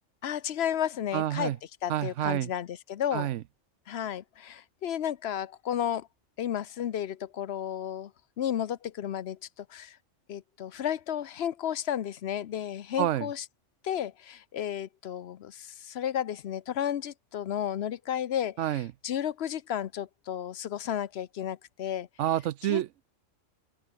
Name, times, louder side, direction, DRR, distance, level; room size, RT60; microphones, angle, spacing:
voice 1, 0.2-1.5 1.8-3.3 3.9-6.1 6.4-8.1 8.4-10.0 10.3-13.4 13.8-22.1 22.7-22.8, left 10 dB, 60° left, 0.9 m, -33 dB
voice 2, 1.1-1.6 1.9-2.5 3.1-3.4 13.0-13.3 18.6-18.9 22.2-23.1, right 12 dB, 75° right, 0.9 m, -28 dB
open air
omnidirectional pair, 1.3 m